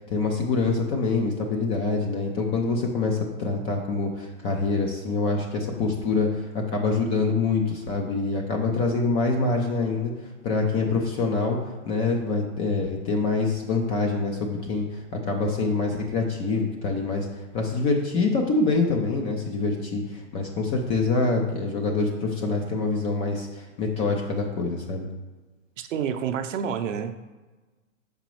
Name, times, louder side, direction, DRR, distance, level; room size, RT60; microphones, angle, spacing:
voice 1, 0.1-11.6 11.9-17.3 17.5-25.1, left 3 dB, 15° left, 1 dB, 0.3 m, -25 dB
voice 2, 25.8-27.3, right 8 dB, 65° right, 7 dB, 0.7 m, -29 dB
6.6 x 5.1 x 3.1 m, 1.2 s
hypercardioid pair, 125°, 41 cm